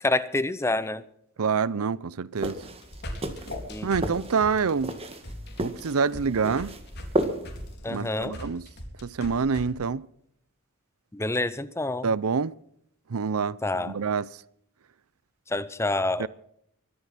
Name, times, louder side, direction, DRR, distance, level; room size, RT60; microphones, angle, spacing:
voice 1, 0.0-1.0 3.7-3.9 7.8-8.4 11.1-12.1 13.6-13.9 15.5-16.3, left 2 dB, 10° left, 0.7 m, -27 dB
voice 2, 1.4-2.6 3.8-4.9 5.6-6.7 7.9-8.7 9.0-10.1 12.0-12.5 13.1-14.3 16.2-16.3, right 5 dB, 80° right, 0.6 m, -26 dB
sound 1, 2.4-7.7, right 1 dB, 25° right, 1.6 m, -33 dB
sound 2, 2.6-9.6, left 1 dB, 50° left, 3.8 m, -39 dB
24.0 x 9.6 x 5.8 m
head